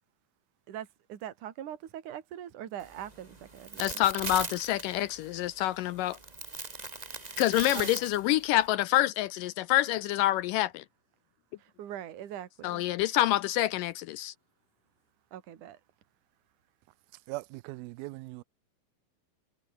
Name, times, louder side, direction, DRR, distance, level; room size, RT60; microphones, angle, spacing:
voice 1, 0.7-4.0 7.7-7.9 11.6-12.8 15.3-15.8, right 11 dB, 60° right, 3.5 m, -42 dB
sound 1, 2.8-8.7, right 3 dB, 20° right, 1.1 m, -40 dB
voice 2, 3.8-6.2 7.4-10.8 12.6-14.3, left 15 dB, 80° left, 2.1 m, -27 dB
voice 3, 17.3-18.4, right 21 dB, 90° right, 2.5 m, -40 dB
omnidirectional pair, 4.2 m